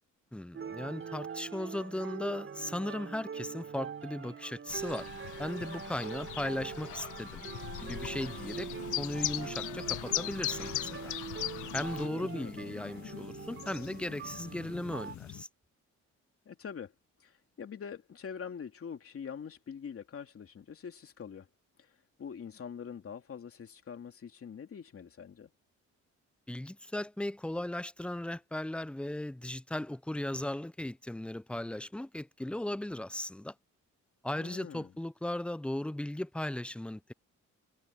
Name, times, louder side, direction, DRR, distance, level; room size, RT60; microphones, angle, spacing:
voice 1, 0.3-5.1 5.4-7.4 7.8-8.7 9.0-11.1 11.7-15.5 26.5-33.5 34.2-37.1, left 1 dB, 5° left, 0.6 m, -37 dB
sound 1, 0.5-15.1, right 7 dB, 45° right, 3.1 m, -43 dB
Chirp tweet, 4.7-12.1, left 14 dB, 85° left, 1.6 m, -38 dB
sound 2, 7.9-15.4, left 11 dB, 65° left, 1.7 m, -48 dB
voice 2, 12.0-12.5 16.4-16.9 17.2-21.5 21.8-25.5 34.4-34.9, left 7 dB, 50° left, 2.9 m, -44 dB
cardioid pair, 90°, 30 cm